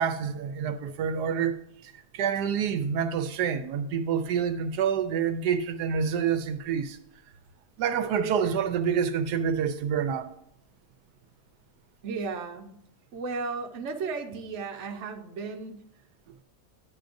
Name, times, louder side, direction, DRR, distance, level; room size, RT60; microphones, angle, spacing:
voice 1, 0.0-1.6 1.8-7.0 7.8-10.3, right 7 dB, 80° right, 1.2 m, -27 dB
voice 2, 12.0-12.8 13.1-15.8, right 4 dB, 55° right, 1.0 m, -34 dB
10.5 x 8.3 x 2.6 m
omnidirectional pair, 1.7 m